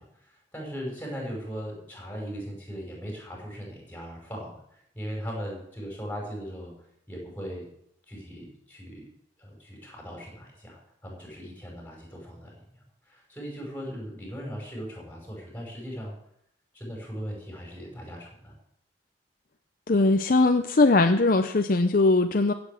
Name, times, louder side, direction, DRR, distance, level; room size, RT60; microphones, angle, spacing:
voice 1, 0.0-6.7 7.1-7.7 8.1-9.0 9.4-12.8 13.0-16.1 16.7-18.6, equal, 10° left, -1 dB, 5.5 m, -39 dB
voice 2, 19.9-22.5, left 2 dB, 50° left, 8 dB, 0.6 m, -20 dB
15.0 x 8.0 x 7.1 m, 0.73 s
head